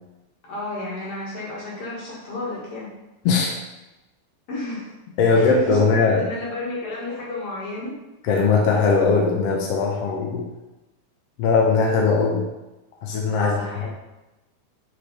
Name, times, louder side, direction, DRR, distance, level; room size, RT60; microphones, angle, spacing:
voice 1, 0.4-2.9 4.5-4.9 5.3-8.0 13.4-13.9, left 2 dB, 55° left, -6 dB, 2.5 m, -32 dB
voice 2, 5.2-6.2 8.2-10.4 11.4-12.4 13.0-13.9, left 4 dB, 75° left, -1 dB, 1.5 m, -19 dB
7.2 x 3.4 x 4.1 m, 1.0 s
omnidirectional pair, 3.6 m